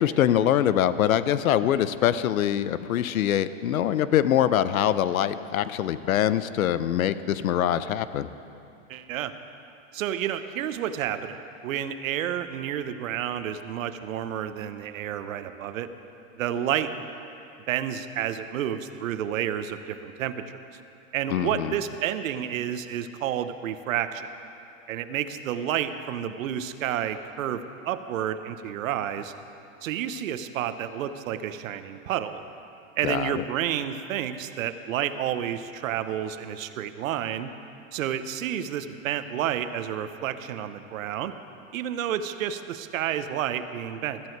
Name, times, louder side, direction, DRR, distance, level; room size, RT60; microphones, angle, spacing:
voice 1, 0.0-8.3 21.3-21.8 33.0-33.4, left 10 dB, 90° left, 14 dB, 0.7 m, -24 dB
voice 2, 8.9-9.3 9.9-15.9 16.3-17.1 17.7-20.4 21.1-24.3 24.9-29.3 29.8-32.4 33.0-37.5 37.9-41.3 41.7-44.2, right 10 dB, 75° right, 11 dB, 1.0 m, -30 dB
15.5 x 14.0 x 4.7 m, 2.7 s
hypercardioid pair, 125°, 40 cm